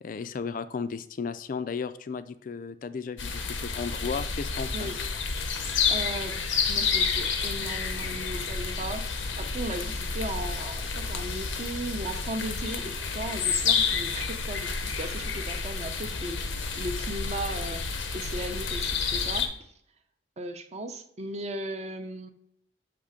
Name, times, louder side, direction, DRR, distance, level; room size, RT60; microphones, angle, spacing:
voice 1, 0.0-4.9, left 5 dB, 45° left, 13 dB, 0.3 m, -34 dB
sound 1, 3.2-19.5, left 5 dB, 90° left, 0.8 m, -30 dB
voice 2, 5.9-19.7 20.4-22.3, right 1 dB, 35° right, 7 dB, 0.6 m, -37 dB
6.8 x 3.2 x 5.0 m, 0.73 s
head